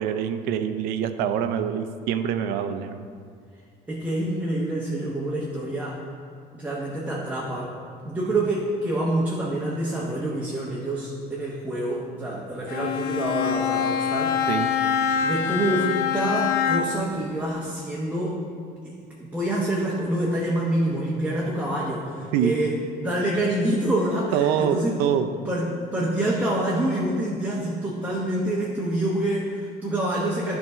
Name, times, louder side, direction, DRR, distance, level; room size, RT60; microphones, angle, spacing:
voice 1, 0.0-3.0 14.5-14.7 22.3-22.5 24.3-25.3, right 9 dB, 90° right, 9 dB, 0.5 m, -25 dB
voice 2, 3.9-6.0 6.5-7.7 8.0-14.4 15.2-18.4 18.8-22.7 23.0-25.0 25.5-30.6, right 1 dB, 10° right, -5 dB, 0.9 m, -27 dB
Bowed string instrument, 12.7-17.1, left 7 dB, 80° left, 0.4 m, -25 dB
9.1 x 3.6 x 5.4 m, 2.2 s
cardioid pair, 125°, 15 cm